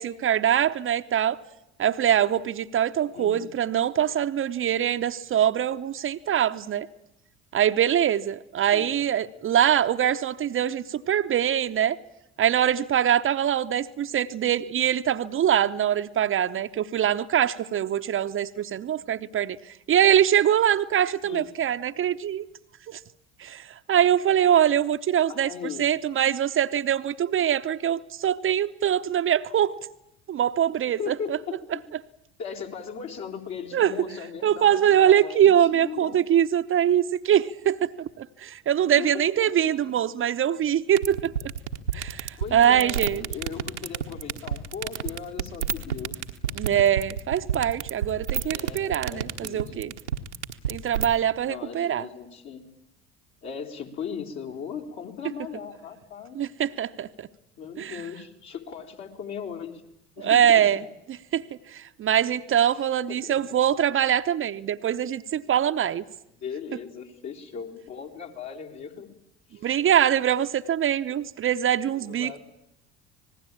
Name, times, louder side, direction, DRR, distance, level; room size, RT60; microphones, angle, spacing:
voice 1, 0.0-1.4 1.8-6.9 7.5-12.0 12.4-19.6 19.9-22.4 22.9-23.0 23.4-25.5 25.8-29.8 30.3-31.4 33.7-33.9 34.4-41.3 41.9-43.3 46.5-49.9 50.7-52.1 56.4-57.3 57.8-58.0 60.2-60.8 61.3-61.4 61.7-66.0 69.6-72.4, right 10 dB, 40° right, 9 dB, 0.8 m, -23 dB
voice 2, 3.1-3.5 8.6-9.0 21.2-21.5 25.3-25.8 31.0-31.8 32.4-36.2 38.8-39.5 40.7-40.8 42.4-46.2 48.5-50.0 51.4-52.7 53.4-56.5 57.6-59.8 60.2-60.7 62.7-62.8 63.1-63.4 66.4-69.1 69.5-69.6 71.9-72.4, left 7 dB, 55° left, 0 dB, 3.7 m, -38 dB
sound 1, 41.0-51.1, right 8 dB, 90° right, 1.2 m, -28 dB
26.5 x 19.0 x 8.8 m, 0.87 s
hypercardioid pair, 60°, 34 cm